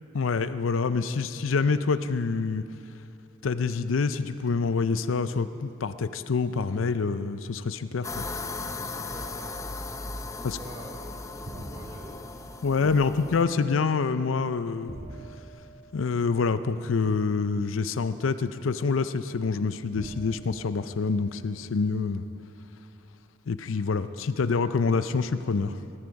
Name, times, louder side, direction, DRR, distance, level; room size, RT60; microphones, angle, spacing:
voice 1, 0.1-2.6 3.4-8.3 10.4-10.6 12.6-14.9 15.9-22.2 23.5-25.8, left 4 dB, 80° left, 12 dB, 0.5 m, -26 dB
sound 1, 8.0-13.4, left 3 dB, 15° left, 0.6 m, -37 dB
voice 2, 8.9-13.8, right 1 dB, 20° right, -1 dB, 1.1 m, -48 dB
sound 2, 11.4-12.4 14.9-16.5 17.7-17.8 19.9-21.7, right 1 dB, 55° right, 4.3 m, -44 dB
19.0 x 13.5 x 5.2 m, 2.7 s
head